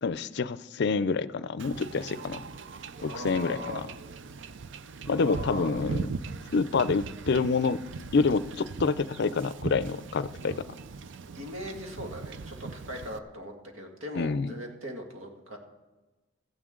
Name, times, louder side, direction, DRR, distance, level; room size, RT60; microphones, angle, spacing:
voice 1, 0.0-2.4 3.0-3.9 5.1-6.1 6.5-7.8 8.1-10.5 14.2-14.5, left 4 dB, 55° left, 17 dB, 0.4 m, -27 dB
Wind / Ocean / Boat Water vehicle, 1.6-13.2, right 4 dB, 60° right, 0.5 m, -40 dB
voice 2, 3.0-3.8 5.0-5.8 10.4-10.7 11.4-15.6, equal, 80° right, 2 dB, 2.0 m, -40 dB
16.5 x 14.5 x 3.8 m, 1.2 s
head